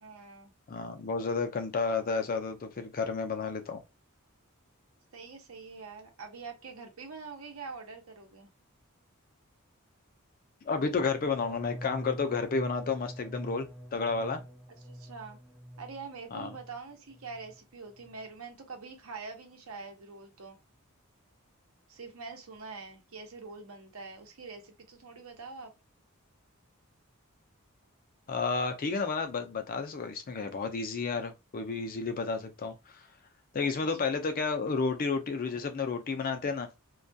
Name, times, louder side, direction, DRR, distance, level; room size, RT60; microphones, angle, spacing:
voice 1, 0.0-0.5 5.1-8.5 14.9-15.4 15.8-20.6 21.9-25.7 33.8-34.2, right 4 dB, 80° right, 0.8 m, -45 dB
voice 2, 0.7-3.8 10.6-14.4 16.3-16.5 28.3-33.0 33.5-36.7, left 4 dB, 45° left, 0.4 m, -31 dB
sound 1, 10.9-16.8 17.1-17.6 17.9-18.3, equal, ahead, 0.7 m, -45 dB
2.3 x 2.2 x 2.6 m
head